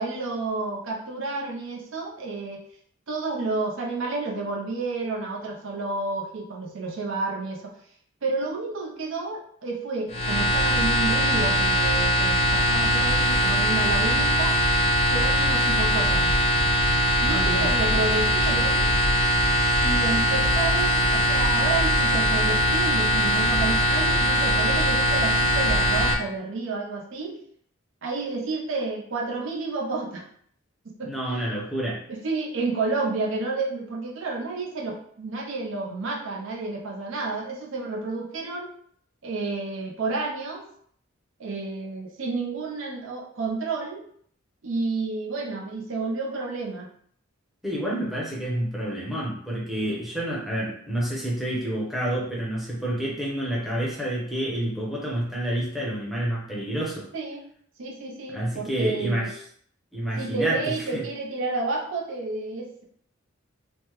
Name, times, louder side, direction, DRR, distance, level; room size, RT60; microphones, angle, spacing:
voice 1, 0.0-2.6 3.1-7.8 8.2-14.6 15.1-16.4 17.2-18.9 19.8-27.4 28.0-30.2 30.8-31.5 32.1-38.7 39.2-40.6 41.4-44.0 44.6-46.9 50.5-50.6 57.1-57.4 57.8-59.3 60.2-62.8, right 3 dB, 65° right, -1 dB, 0.6 m, -30 dB
sound 1, 10.1-26.1, equal, 30° left, 0.4 m, -21 dB
voice 2, 17.3-17.7 31.0-32.0 47.6-57.1 58.3-59.4 59.9-61.0, right 1 dB, ahead, -5 dB, 0.7 m, -29 dB
3.2 x 2.1 x 3.0 m, 0.62 s
head